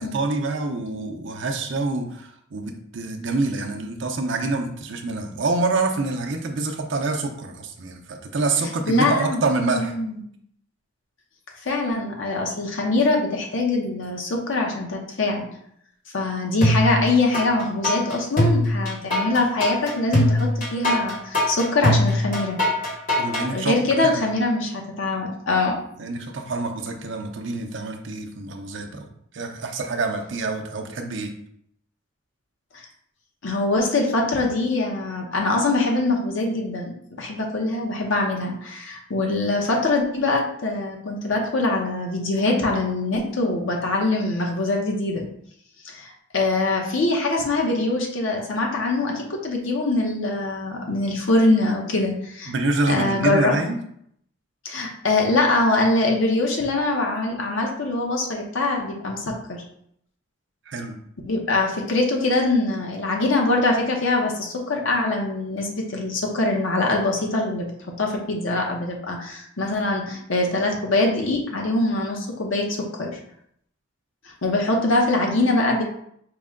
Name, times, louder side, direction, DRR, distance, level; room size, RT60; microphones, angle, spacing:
voice 1, 0.0-9.9 23.2-23.7 24.0-24.3 26.0-29.1 29.3-31.3 52.5-53.8 60.7-60.9, right 3 dB, 65° right, 4 dB, 0.5 m, -26 dB
voice 2, 8.9-9.4 9.8-10.2 11.6-15.4 16.1-22.6 23.5-25.8 33.4-45.2 45.8-52.5 52.9-53.5 54.6-59.6 61.3-67.7 68.0-73.2 74.2-75.8, left 2 dB, 75° left, 0 dB, 0.8 m, -23 dB
sound 1, 16.6-17.5 17.8-23.5, left 1 dB, 40° left, 1.3 m, -21 dB
4.7 x 2.2 x 3.6 m, 0.70 s
head